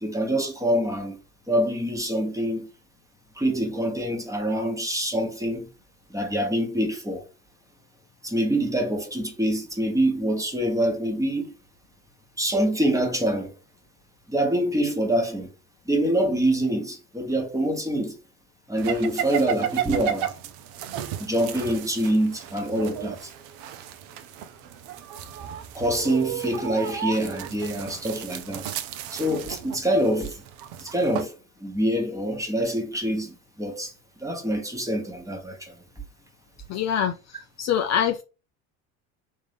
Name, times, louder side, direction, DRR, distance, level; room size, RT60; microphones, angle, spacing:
voice 1, 0.0-1.2 1.5-2.7 3.4-5.7 6.1-7.2 8.2-11.5 12.4-13.5 14.3-15.5 15.8-18.2 18.7-20.4 21.2-23.3 25.7-28.7 29.1-30.4 30.8-33.9 34.2-35.7, right 1 dB, 10° right, 1.1 m, -25 dB
sound 1, 18.8-31.3, right 10 dB, 65° right, 0.7 m, -34 dB
voice 2, 36.7-38.2, left 9 dB, 40° left, 0.5 m, -25 dB
3.6 x 2.7 x 3.4 m
hypercardioid pair, 75°, 42 cm